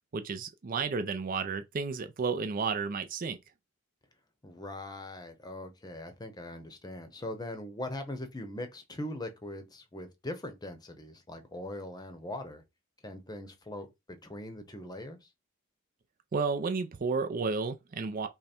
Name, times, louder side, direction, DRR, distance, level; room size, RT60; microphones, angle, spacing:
voice 1, 0.1-3.4 16.3-18.3, right 4 dB, 40° right, 0.4 m, -32 dB
voice 2, 4.4-12.6 13.0-15.3, left 1 dB, 20° left, 0.8 m, -41 dB
5.3 x 2.2 x 4.3 m
head